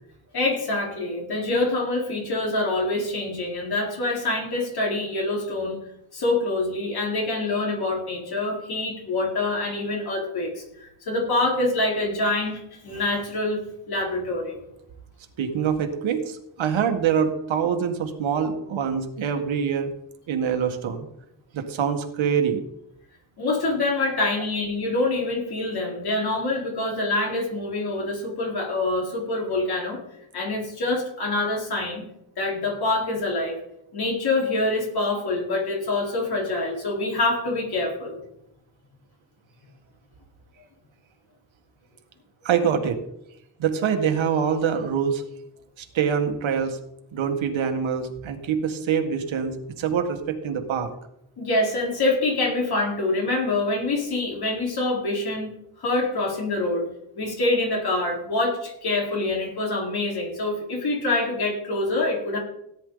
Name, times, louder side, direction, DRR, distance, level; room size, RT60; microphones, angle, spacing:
voice 1, 0.3-5.8 6.1-13.6 13.9-14.6 23.4-30.0 30.3-32.0 32.4-33.6 33.9-38.2 51.4-56.9 57.2-62.4, left 2 dB, 50° left, -1 dB, 4.2 m, -25 dB
voice 2, 15.4-19.9 20.3-21.1 21.5-22.6 42.4-43.0 43.6-45.2 45.8-46.8 47.1-50.9, right 7 dB, 70° right, 5 dB, 1.9 m, -25 dB
17.5 x 10.5 x 4.0 m, 0.80 s
wide cardioid pair, 150°, 48 cm